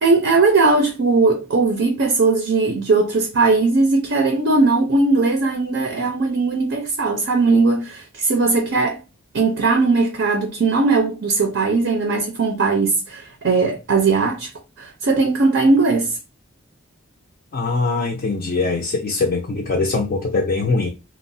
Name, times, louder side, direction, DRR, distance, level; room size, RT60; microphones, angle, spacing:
voice 1, 0.0-9.0 9.3-14.5 14.8-16.2, right 3 dB, 55° right, 0.5 m, -18 dB
voice 2, 17.5-20.9, left 3 dB, 40° left, 0.4 m, -22 dB
2.9 x 2.1 x 2.6 m
head